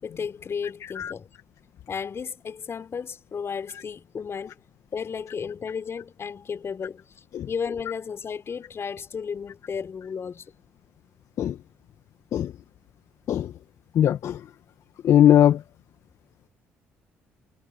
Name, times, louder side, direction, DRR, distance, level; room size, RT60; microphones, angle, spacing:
voice 1, 0.0-1.3 1.9-4.6 4.9-7.1 7.5-10.5, left 6 dB, 45° left, 6.3 m, -33 dB
voice 2, 14.0-14.4 15.0-15.6, left 11 dB, 65° left, 1.8 m, -19 dB
hypercardioid pair, 55°, 6 cm